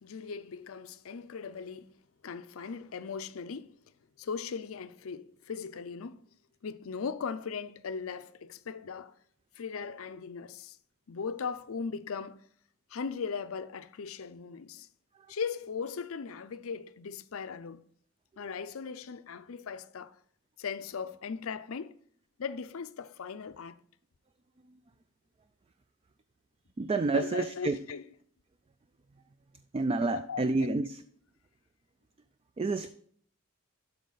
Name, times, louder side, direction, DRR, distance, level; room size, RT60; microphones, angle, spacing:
voice 1, 0.0-1.9 2.2-3.8 4.2-6.2 6.6-9.2 9.6-10.8 11.1-12.4 12.9-14.9 15.3-17.8 18.4-20.2 20.6-21.9 22.4-23.8 27.0-28.1 30.0-30.7, left 5 dB, 85° left, 0.5 m, -38 dB
voice 2, 26.8-27.8 29.7-31.0 32.6-32.9, right 3 dB, 25° right, 0.3 m, -29 dB
12.5 x 4.5 x 4.0 m
head